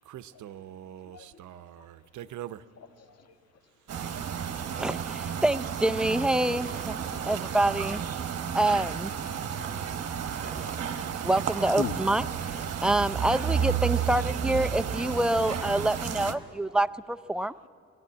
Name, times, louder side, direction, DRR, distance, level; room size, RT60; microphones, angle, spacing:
voice 1, 0.0-2.7, right 12 dB, 75° right, 0.7 m, -44 dB
voice 2, 1.0-1.9 3.0-3.4 3.6-4.9 7.0-7.4 7.9-8.5 11.6-12.0 13.7-13.8 14.2-14.3 14.6-14.7 15.1-15.3 16.4-16.8, left 6 dB, 55° left, 1.5 m, -44 dB
sound 1, 3.9-16.4, right 8 dB, 55° right, 1.2 m, -32 dB
voice 3, 4.8-7.0 7.2-8.0 8.5-9.1 11.2-12.2 12.8-17.5, right 1 dB, 5° right, 0.4 m, -26 dB
sound 2, 5.8-11.9 12.3-12.9, right 3 dB, 30° right, 2.7 m, -47 dB
19.5 x 15.5 x 9.6 m
cardioid pair, 90°, 30 cm